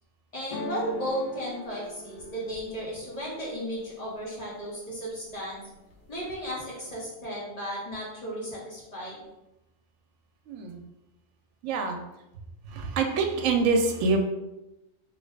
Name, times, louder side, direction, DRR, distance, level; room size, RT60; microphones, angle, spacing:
voice 1, 0.3-5.6 6.1-9.2, equal, 30° left, -7 dB, 1.3 m, -35 dB
sound 1, 0.5-4.4 4.8-5.4 5.7-6.5, left 1 dB, 90° left, 1.0 m, -41 dB
voice 2, 10.5-10.8 11.6-12.0 12.7-14.2, right 4 dB, 75° right, 4 dB, 0.9 m, -25 dB
3.1 x 2.8 x 3.2 m, 0.92 s
omnidirectional pair, 1.4 m